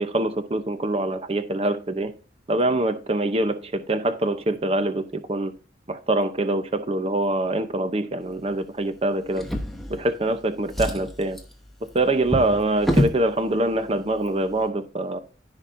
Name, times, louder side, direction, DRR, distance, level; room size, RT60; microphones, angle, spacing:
voice 1, 0.0-2.1 2.5-5.5 5.9-9.5 9.9-11.4 11.9-15.2, right 2 dB, 35° right, 0.7 m, -24 dB
Drawer open or close, 9.3-10.3 10.6-13.2 14.1-14.3 14.7-14.8, equal, ahead, 1.0 m, -27 dB
14.5 x 5.2 x 2.6 m
head